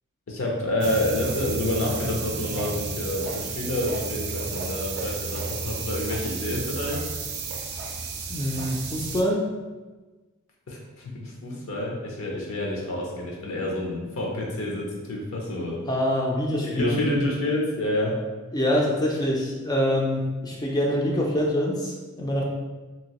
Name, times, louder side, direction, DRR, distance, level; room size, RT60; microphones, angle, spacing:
voice 1, 0.3-7.0 10.7-10.8 11.1-15.8 16.6-18.2, left 1 dB, 70° left, -2 dB, 0.6 m, -28 dB
sound 1, 0.8-9.2, right 4 dB, 50° right, 0.4 m, -32 dB
voice 2, 8.3-9.4 15.9-17.0 18.5-22.4, equal, 20° left, -1 dB, 0.3 m, -25 dB
2.9 x 2.7 x 2.9 m, 1.3 s
head